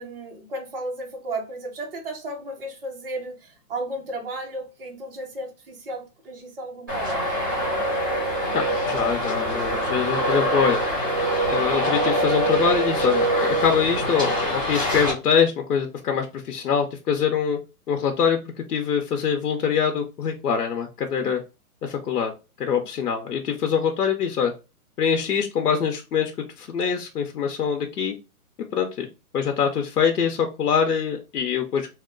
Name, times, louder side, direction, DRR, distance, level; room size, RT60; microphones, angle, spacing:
voice 1, 0.0-7.3 21.2-21.3, right 1 dB, 40° right, 1.1 m, -34 dB
Traffic noise roadway noise, 6.9-15.1, right 1 dB, 15° right, 0.6 m, -24 dB
voice 2, 8.5-10.8 11.5-17.6 17.9-18.4 18.7-21.4 21.8-22.3 22.6-24.5 25.0-26.3 26.6-28.2 28.7-29.1 29.3-31.9, left 7 dB, 80° left, 0.8 m, -24 dB
2.9 x 2.2 x 3.7 m
hypercardioid pair, 170°, 46 cm